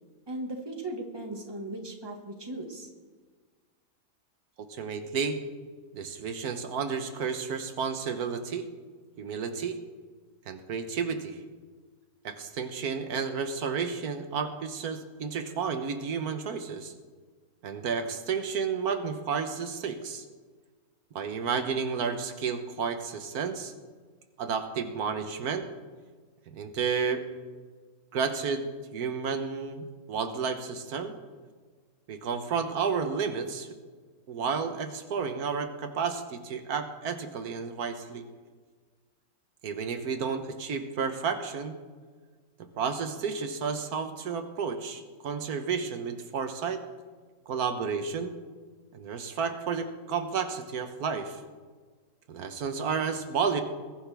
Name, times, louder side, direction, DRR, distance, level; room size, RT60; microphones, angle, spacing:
voice 1, 0.3-2.9, right 1 dB, 15° right, 2 dB, 1.7 m, -37 dB
voice 2, 4.7-5.4 5.9-8.7 9.2-9.8 10.5-11.4 12.2-16.9 17.6-20.3 21.1-23.7 24.4-25.7 26.5-27.3 28.1-31.1 32.1-33.7 34.3-38.3 39.6-41.7 42.6-46.8 47.5-48.3 48.9-51.4 52.3-53.6, right 6 dB, 85° right, 8 dB, 1.5 m, -31 dB
21.0 x 11.0 x 3.5 m, 1.5 s
omnidirectional pair, 1.6 m